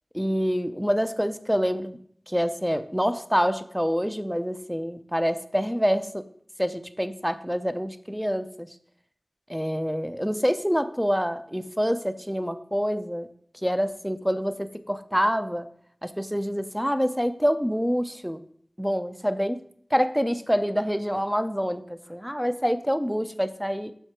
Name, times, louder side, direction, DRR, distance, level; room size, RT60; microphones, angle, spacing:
voice 1, 0.1-2.0 2.3-6.2 6.6-8.7 9.5-13.3 13.6-15.7 16.0-18.4 18.8-19.6 19.9-23.9, equal, ahead, 11 dB, 0.5 m, -26 dB
6.6 x 4.5 x 4.5 m, 0.62 s
wide cardioid pair, 50°, 0 cm